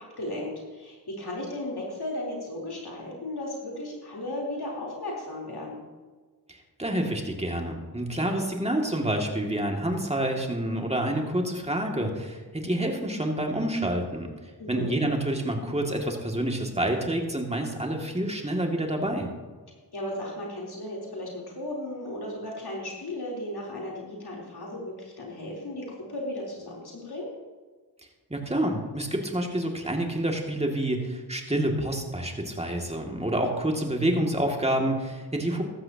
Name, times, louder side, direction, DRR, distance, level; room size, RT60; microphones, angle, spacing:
voice 1, 0.0-5.8 14.6-14.9 19.9-27.3, left 1 dB, 65° left, -3 dB, 3.8 m, -35 dB
voice 2, 6.5-14.3 14.7-19.3 28.3-35.6, right 1 dB, 15° right, 1 dB, 2.3 m, -28 dB
15.5 x 12.5 x 2.9 m, 1.4 s
cardioid pair, 50°, 41 cm